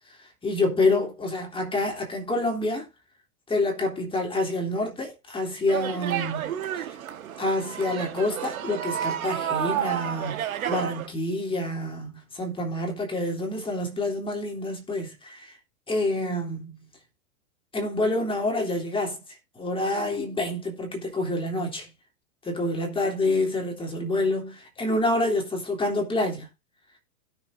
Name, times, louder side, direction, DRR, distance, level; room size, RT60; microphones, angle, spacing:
voice 1, 0.1-2.9 3.5-7.0 7.4-15.6 15.9-16.8 17.7-19.2 19.6-21.9 22.4-26.5, left 2 dB, 10° left, 3.5 m, -27 dB
sound 1, 5.7-11.1, right 10 dB, 75° right, 1.7 m, -31 dB
16.5 x 6.7 x 2.7 m
hypercardioid pair, 120°, 42 cm